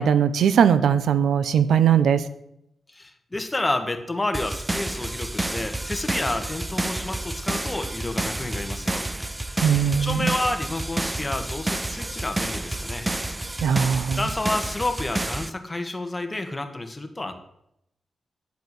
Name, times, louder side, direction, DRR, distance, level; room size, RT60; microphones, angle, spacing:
voice 1, 0.0-2.2 9.6-10.3 13.6-14.2, right 8 dB, 90° right, 13 dB, 0.9 m, -20 dB
voice 2, 2.9-9.0 9.4-9.6 10.0-13.1 14.2-17.3, left 2 dB, 15° left, 6 dB, 1.7 m, -30 dB
sound 1, 4.3-15.5, right 2 dB, 10° right, 0.6 m, -30 dB
11.0 x 8.4 x 8.3 m, 0.77 s
wide cardioid pair, 120°, 0 cm